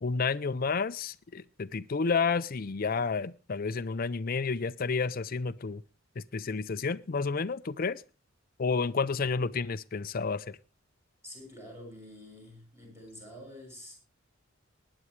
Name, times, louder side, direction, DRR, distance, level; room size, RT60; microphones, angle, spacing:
voice 1, 0.0-5.8 6.2-8.0 8.6-10.6, left 4 dB, 45° left, 0.5 m, -30 dB
voice 2, 11.2-13.9, left 1 dB, 15° right, 6.0 m, -47 dB
20.0 x 9.8 x 3.2 m
head